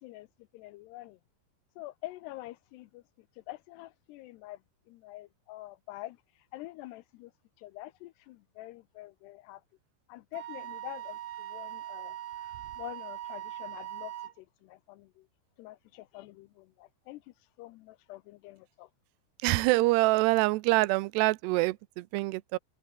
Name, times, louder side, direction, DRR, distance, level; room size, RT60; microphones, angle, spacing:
voice 1, 0.5-1.2 1.8-3.0 3.5-4.6 4.9-6.2 6.5-7.3 7.6-9.6 10.1-15.3 15.6-17.2 17.6-18.9, left 17 dB, 90° left, 2.4 m, -46 dB
Wind instrument woodwind instrument, 10.3-14.3, right 12 dB, 65° right, 3.4 m, -41 dB
voice 2, 19.4-22.6, right 21 dB, 80° right, 2.4 m, -25 dB
omnidirectional pair, 5.6 m